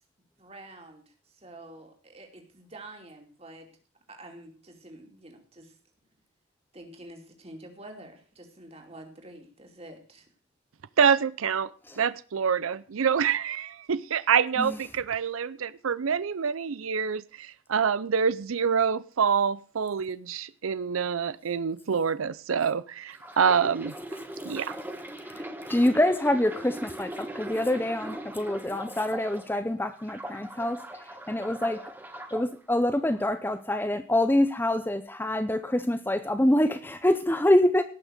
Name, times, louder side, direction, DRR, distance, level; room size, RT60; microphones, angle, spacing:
voice 1, 0.4-1.0 1.4-3.7 4.1-5.7 6.7-10.2, right 1 dB, 30° right, 3 dB, 2.8 m, -47 dB
voice 2, 11.0-11.7 12.0-23.9 24.4-24.7, right 6 dB, 85° right, 17 dB, 0.5 m, -26 dB
sound 1, 23.1-29.6 30.0-32.5 33.1-33.3, right 1 dB, 10° right, 1.5 m, -40 dB
voice 3, 25.3-30.8 31.3-31.8 32.3-37.8, left 1 dB, 10° left, 10 dB, 0.6 m, -25 dB
17.5 x 6.3 x 6.6 m, 0.41 s
head